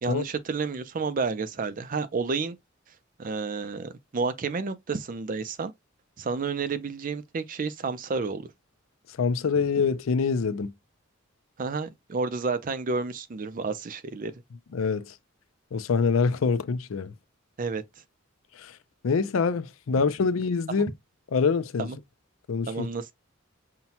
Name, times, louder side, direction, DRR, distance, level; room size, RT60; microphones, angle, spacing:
voice 1, 0.0-2.6 3.2-5.7 6.2-8.5 11.6-14.3 17.6-17.8 21.8-22.0 22.7-23.1, right 4 dB, 40° right, 0.4 m, -30 dB
voice 2, 9.2-10.7 14.7-15.1 15.7-17.1 18.6-18.8 19.0-20.9 21.3-21.9 22.5-22.9, left 5 dB, 80° left, 0.5 m, -25 dB
5.6 x 2.2 x 2.8 m
head